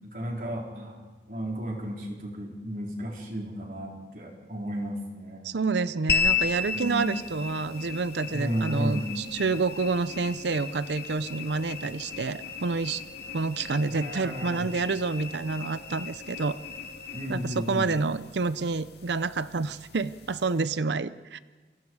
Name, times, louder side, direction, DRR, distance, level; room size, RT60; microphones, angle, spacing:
voice 1, 0.0-1.0 1.3-5.5 6.7-7.2 8.3-9.1 13.9-14.7 17.1-17.9, equal, 50° right, -1 dB, 4.3 m, -33 dB
voice 2, 5.4-13.0 13.3-16.6 17.3-21.4, right 4 dB, 75° right, 15 dB, 0.6 m, -28 dB
sound 1, 6.1-20.7, left 5 dB, 70° left, 1.9 m, -35 dB
28.5 x 23.5 x 4.8 m, 1.3 s
head